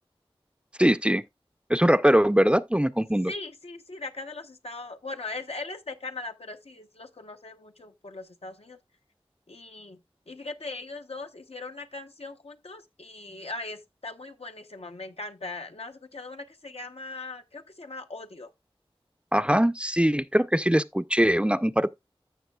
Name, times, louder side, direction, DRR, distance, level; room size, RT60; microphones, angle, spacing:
voice 1, 0.8-1.2 1.7-3.3 19.3-21.9, equal, 10° right, 0.4 m, -22 dB
voice 2, 3.3-8.8 9.5-10.0 10.3-18.5, left 3 dB, 85° left, 0.8 m, -39 dB
14.0 x 6.2 x 2.3 m
wide cardioid pair, 45°, 10 cm